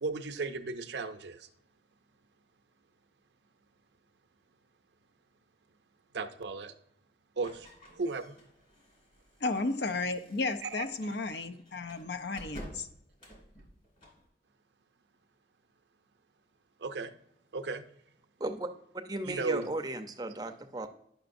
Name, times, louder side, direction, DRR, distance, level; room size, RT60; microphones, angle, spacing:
voice 1, 0.0-1.5 6.1-6.7 7.4-8.4 10.6-10.9 16.8-17.1 17.5-17.8 19.2-19.7, right 3 dB, 75° right, 8 dB, 0.6 m, -35 dB
sound 1, 7.4-14.3, equal, 40° left, 2.3 m, -52 dB
voice 2, 9.4-12.9, left 3 dB, 70° left, 9 dB, 0.6 m, -33 dB
voice 3, 19.0-20.9, right 2 dB, 20° right, 6 dB, 0.5 m, -36 dB
10.5 x 5.9 x 2.6 m, 0.74 s
head